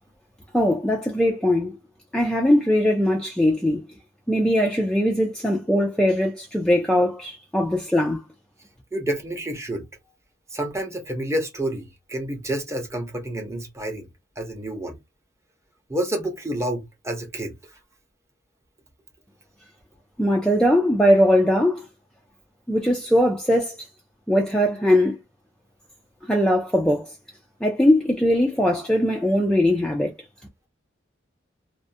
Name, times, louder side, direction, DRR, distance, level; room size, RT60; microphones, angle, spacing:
voice 1, 0.5-1.8 2.1-3.9 4.3-8.2 20.2-21.9 22.7-23.8 24.3-25.2 26.3-27.1 27.6-30.1, equal, 5° left, 0.4 m, -20 dB
voice 2, 8.9-9.8 10.5-14.1 14.4-15.0 15.9-17.5, right 1 dB, 15° right, 0.7 m, -29 dB
2.4 x 2.1 x 2.5 m
head